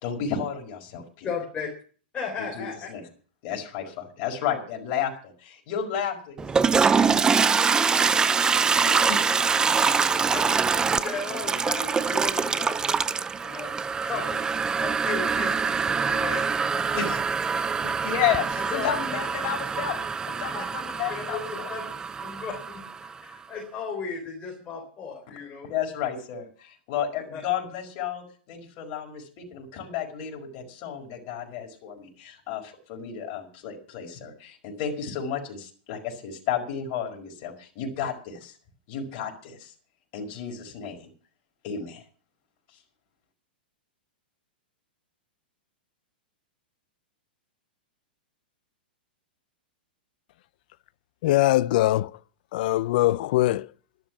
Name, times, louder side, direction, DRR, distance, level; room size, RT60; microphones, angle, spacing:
voice 1, 0.0-1.3 2.4-3.1 3.4-7.3 8.0-8.2 8.7-9.2 16.9-17.2 17.8-21.7 25.3-25.4 25.6-38.6 38.9-39.7 40.1-41.1 41.6-42.0, left 8 dB, 45° left, 5.1 m, -32 dB
voice 2, 1.2-1.7 2.1-2.9 9.8-12.8 13.4-13.8 14.0-16.8 17.5-17.7 18.6-19.0 20.5-20.6 21.1-21.9 22.2-25.7 27.3-27.4, left 5 dB, 20° left, 4.0 m, -36 dB
Toilet flush, 6.4-23.1, right 5 dB, 15° right, 0.6 m, -24 dB
voice 3, 51.2-52.1 52.5-53.7, left 16 dB, 60° left, 0.7 m, -22 dB
12.5 x 12.0 x 6.2 m
hypercardioid pair, 135°, 5 cm